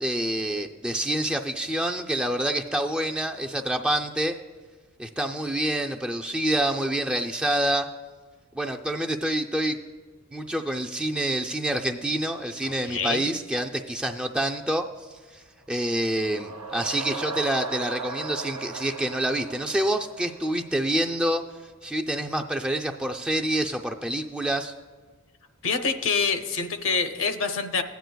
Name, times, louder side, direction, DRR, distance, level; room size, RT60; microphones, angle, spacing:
voice 1, 0.0-4.4 5.0-7.9 8.5-9.8 10.3-21.4 21.8-24.7, right 1 dB, 5° right, 3 dB, 0.3 m, -27 dB
voice 2, 12.6-13.3 25.6-27.8, left 5 dB, 65° left, 8 dB, 0.7 m, -26 dB
sound 1, 15.8-20.7, right 3 dB, 80° right, 0.7 m, -37 dB
15.5 x 9.2 x 2.2 m, 1.4 s
head